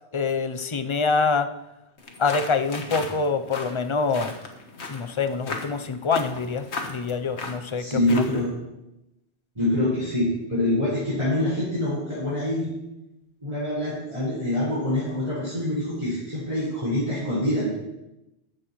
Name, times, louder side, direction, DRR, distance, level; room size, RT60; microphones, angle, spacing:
voice 1, 0.1-1.5 2.2-4.3 4.9-8.2, left 4 dB, 35° left, 10 dB, 0.5 m, -25 dB
sound 1, 2.0-8.5, left 3 dB, 80° left, 1.6 m, -37 dB
voice 2, 7.8-8.5 9.5-12.7 13.4-17.7, left 1 dB, 30° right, -11 dB, 4.9 m, -25 dB
14.0 x 10.5 x 3.1 m, 0.93 s
omnidirectional pair, 1.1 m